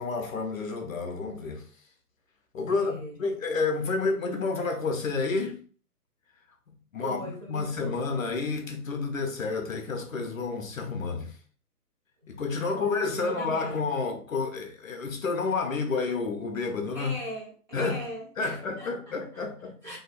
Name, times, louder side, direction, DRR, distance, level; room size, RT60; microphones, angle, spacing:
voice 1, 0.0-1.6 2.5-5.6 6.9-11.3 12.3-17.2 17.7-18.0 18.4-20.0, left 4 dB, 55° left, 0.5 m, -30 dB
voice 2, 2.6-3.4 7.0-8.2 12.2-12.3 12.6-13.9 16.9-19.4 19.8-20.0, right 1 dB, 30° right, 0.7 m, -41 dB
2.6 x 2.3 x 2.4 m
hypercardioid pair, 165°, 48 cm